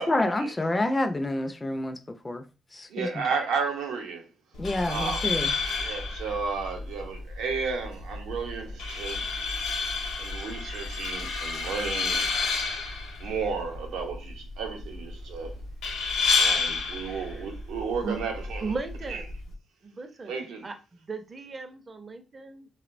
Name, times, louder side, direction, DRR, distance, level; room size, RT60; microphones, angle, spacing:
voice 1, 0.0-2.0 2.2-2.4 2.7-3.2 4.6-5.5, left 1 dB, 25° left, 0.4 m, -28 dB
voice 2, 2.9-4.2 4.9-9.3 10.2-12.3 13.2-15.6 16.4-18.8 19.1-19.2 20.3-20.7, right 5 dB, 85° right, 0.6 m, -33 dB
sound 1, 4.5-19.5, left 4 dB, 80° left, 0.5 m, -30 dB
voice 3, 17.0-17.5 18.0-18.2 18.6-19.3 19.8-22.7, right 4 dB, 40° right, 0.4 m, -37 dB
2.9 x 2.1 x 2.5 m
supercardioid pair, 50°, 0 cm